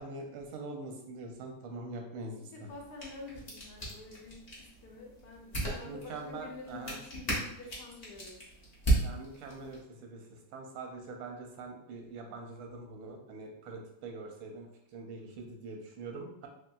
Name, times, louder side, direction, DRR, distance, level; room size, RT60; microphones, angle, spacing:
voice 1, 0.0-2.5 5.8-7.0 9.0-10.2 10.5-14.7 14.9-16.5, right 3 dB, 85° right, 2 dB, 1.5 m, -43 dB
voice 2, 2.3-8.4, left 3 dB, 70° left, -1 dB, 1.0 m, -48 dB
sound 1, 2.7-9.8, right 2 dB, 50° left, 0.4 m, -36 dB
3.6 x 3.0 x 2.2 m, 0.79 s
omnidirectional pair, 2.3 m